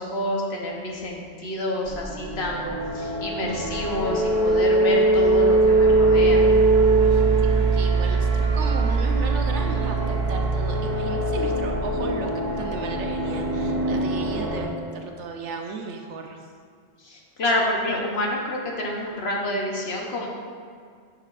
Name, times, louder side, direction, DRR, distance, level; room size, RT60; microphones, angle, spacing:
voice 1, 0.0-6.5 17.0-20.3, left 1 dB, 65° left, -1 dB, 1.2 m, -28 dB
sound 1, 1.9-14.7, right 3 dB, 45° right, 0.8 m, -21 dB
voice 2, 7.0-14.7 15.0-16.4, right 4 dB, 80° right, 3 dB, 1.0 m, -35 dB
9.9 x 5.7 x 2.5 m, 2.1 s
omnidirectional pair, 1.2 m